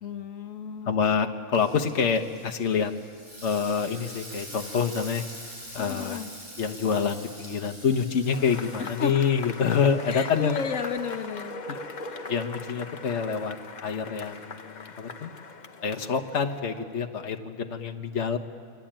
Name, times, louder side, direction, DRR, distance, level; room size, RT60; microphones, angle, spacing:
voice 1, 0.0-1.1 5.7-6.3 8.8-9.1 9.6-11.6, left 6 dB, 80° left, 6 dB, 1.6 m, -34 dB
voice 2, 0.8-2.9 3.4-5.2 5.7-6.2 6.6-10.6 11.7-11.8 12.3-13.6 13.8-15.3 15.8-18.4, left 6 dB, 60° left, 5 dB, 1.5 m, -27 dB
Frying (food), 1.5-11.2, equal, 35° right, 6.7 m, -45 dB
Cheering / Applause / Crowd, 8.3-16.9, left 4 dB, 40° left, 1.0 m, -40 dB
29.0 x 23.0 x 9.0 m, 2.1 s
omnidirectional pair, 1.3 m